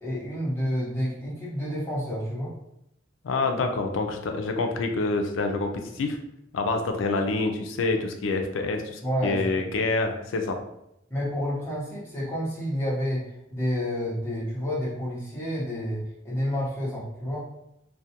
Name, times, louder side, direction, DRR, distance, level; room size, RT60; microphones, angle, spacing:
voice 1, 0.0-2.5 9.0-9.4 11.1-17.4, equal, 15° left, -9 dB, 0.9 m, -29 dB
voice 2, 3.2-6.2 6.5-10.6, left 3 dB, 85° left, 4 dB, 0.4 m, -27 dB
2.3 x 2.2 x 2.8 m, 0.83 s
head